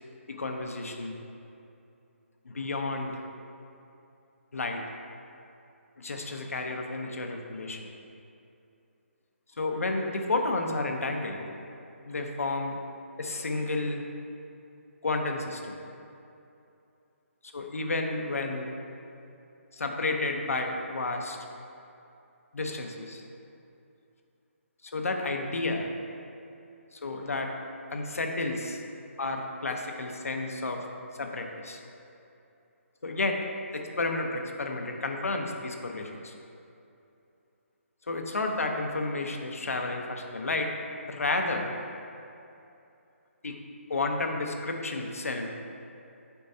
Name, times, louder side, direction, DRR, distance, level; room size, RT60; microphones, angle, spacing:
voice 1, 0.3-1.2 2.5-3.2 4.5-4.8 6.0-7.8 9.6-11.5 12.1-12.8 13.2-14.0 15.0-15.8 17.5-18.8 19.7-21.4 22.5-23.2 24.9-25.9 26.9-27.5 27.9-28.8 29.2-30.8 31.2-31.8 33.0-33.4 33.7-36.3 38.1-40.7 41.1-41.8 43.4-43.6 43.9-45.5, left 2 dB, 85° left, 3 dB, 0.9 m, -31 dB
8.2 x 5.4 x 2.7 m, 2.7 s
hypercardioid pair, 160°, 8 cm